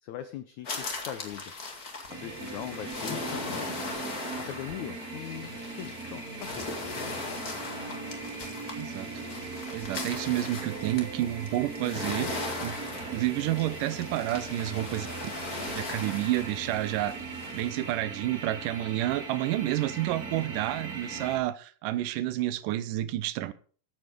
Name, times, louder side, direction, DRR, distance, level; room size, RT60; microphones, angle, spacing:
voice 1, 0.0-1.5 2.1-3.8 4.4-6.2 6.5-6.7, left 11 dB, 70° left, 1.8 m, -40 dB
sound 1, 0.6-17.9, left 3 dB, 30° left, 2.0 m, -39 dB
sound 2, 2.1-21.4, right 4 dB, 30° right, 2.1 m, -39 dB
voice 2, 8.8-9.1 9.7-12.8 13.0-15.3 15.7-17.2 17.5-23.5, right 15 dB, 75° right, 2.3 m, -30 dB
15.0 x 8.1 x 5.2 m
omnidirectional pair, 4.1 m